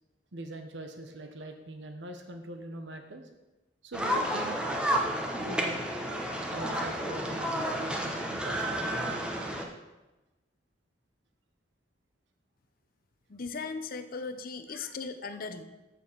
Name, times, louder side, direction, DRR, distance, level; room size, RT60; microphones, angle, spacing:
voice 1, 0.3-3.3 3.8-4.7 5.3-5.9 6.5-9.3 14.7-14.9, right 1 dB, 75° right, 5 dB, 0.9 m, -42 dB
sound 1, 3.9-9.6, equal, 5° right, 1.1 m, -31 dB
voice 2, 13.3-15.6, left 4 dB, 50° left, 9 dB, 0.7 m, -38 dB
7.0 x 6.5 x 7.3 m, 1.1 s
head